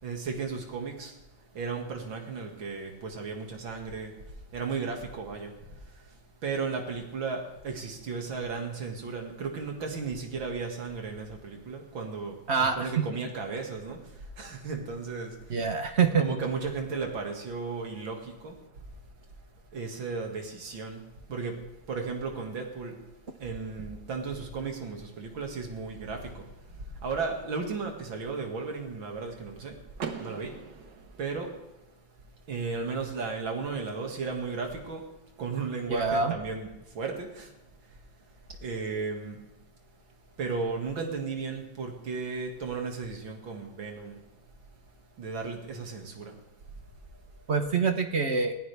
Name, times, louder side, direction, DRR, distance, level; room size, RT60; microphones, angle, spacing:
voice 1, 0.0-1.2 1.5-4.2 4.5-6.1 6.4-15.7 16.2-18.6 19.7-23.0 23.4-29.8 30.2-30.6 31.2-31.6 32.5-35.1 35.4-37.5 38.6-39.4 40.4-44.2 45.2-46.4, right 4 dB, 85° right, 2 dB, 2.9 m, -35 dB
voice 2, 12.5-13.0 15.5-16.3 35.9-36.3 47.5-48.6, right 5 dB, 45° right, 6 dB, 1.0 m, -25 dB
Car / Door, 30.0-31.9, right 6 dB, 65° right, 1.8 m, -40 dB
20.5 x 15.5 x 3.5 m, 0.99 s
omnidirectional pair, 2.1 m